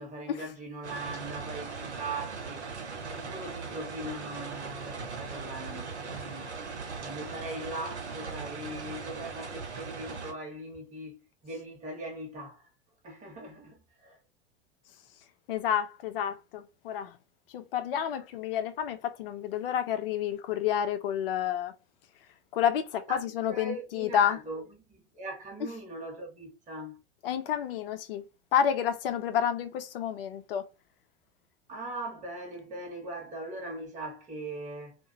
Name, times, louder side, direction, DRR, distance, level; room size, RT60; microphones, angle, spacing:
voice 1, 0.0-6.5 7.0-12.7 13.0-14.2 23.1-23.2 23.5-24.6 24.9-27.0 31.7-35.0, right 2 dB, 20° right, 1.3 m, -40 dB
sound 1, 0.8-10.3, right 4 dB, 75° right, 1.3 m, -39 dB
voice 2, 15.5-17.2 17.5-21.7 22.5-24.4 25.6-25.8 27.2-28.3 28.5-30.7, left 9 dB, 55° left, 0.6 m, -30 dB
2.7 x 2.6 x 2.6 m
figure-of-eight pair, 85°, 34 cm